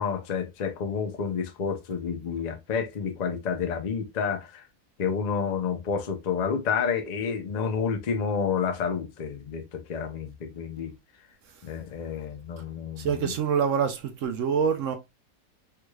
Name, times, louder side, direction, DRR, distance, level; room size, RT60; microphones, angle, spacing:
voice 1, 0.0-4.7 5.0-10.9 11.6-13.3, left 6 dB, 75° left, 0.4 m, -29 dB
voice 2, 13.0-15.0, right 7 dB, 70° right, 0.8 m, -26 dB
3.5 x 3.2 x 2.2 m
omnidirectional pair, 1.7 m